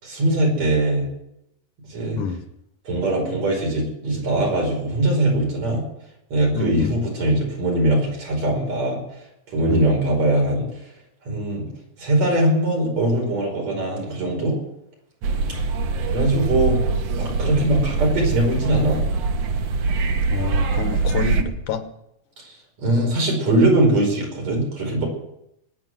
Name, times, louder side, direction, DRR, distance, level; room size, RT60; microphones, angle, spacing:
voice 1, 0.0-1.1 1.9-2.2 2.8-5.8 6.3-9.0 9.5-10.7 11.3-11.7 12.0-14.6 16.1-16.8 17.1-19.0 22.4-22.5 22.8-25.1, right 1 dB, 60° right, 0 dB, 6.5 m, -21 dB
voice 2, 6.6-7.0 9.7-10.0 20.3-21.8, left 5 dB, 85° left, 8 dB, 2.8 m, -27 dB
sound 1, 15.2-21.4, right 4 dB, 85° right, 2.9 m, -23 dB
23.0 x 9.8 x 6.3 m, 0.82 s
omnidirectional pair, 3.4 m